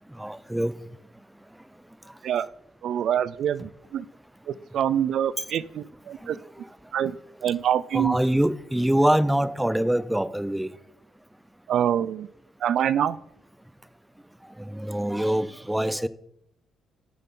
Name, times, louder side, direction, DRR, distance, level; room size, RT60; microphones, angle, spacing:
voice 1, 0.2-0.7 6.2-6.3 7.9-10.7 14.7-16.1, right 1 dB, 5° right, 0.5 m, -24 dB
voice 2, 2.8-4.0 4.5-6.4 6.9-7.2 7.4-8.2 11.7-12.3 12.6-13.2, right 9 dB, 70° right, 0.3 m, -25 dB
11.0 x 7.4 x 3.8 m
cardioid pair, 90°, 0 cm